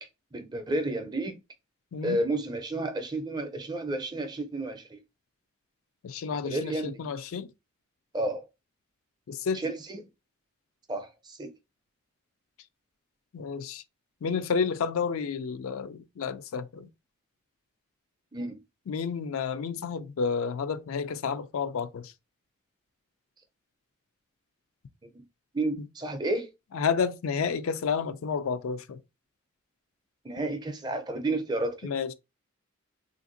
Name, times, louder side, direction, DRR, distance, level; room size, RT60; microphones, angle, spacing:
voice 1, 0.3-1.4 2.0-5.0 6.4-6.9 8.1-8.4 9.5-10.0 10.9-11.5 18.3-18.6 25.0-25.2 25.5-26.5 30.2-31.9, right 2 dB, 20° right, 0.4 m, -31 dB
voice 2, 6.0-7.5 9.3-9.6 13.3-13.8 14.2-16.9 18.9-22.1 26.7-29.0 31.8-32.1, left 6 dB, 80° left, 0.4 m, -30 dB
3.3 x 2.5 x 2.5 m
head